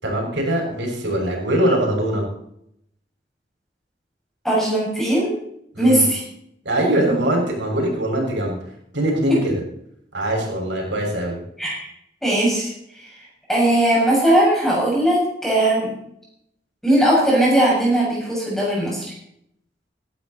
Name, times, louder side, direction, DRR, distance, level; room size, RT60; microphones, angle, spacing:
voice 1, 0.0-2.2 5.7-6.1 6.6-8.6 8.9-9.5 10.1-11.4, right 1 dB, 85° right, 0 dB, 6.3 m, -22 dB
voice 2, 4.4-5.3 5.8-6.2 11.6-11.9 12.2-12.7 13.5-15.9 16.8-19.1, right 1 dB, ahead, -5 dB, 6.9 m, -18 dB
17.5 x 12.0 x 4.3 m, 0.74 s
head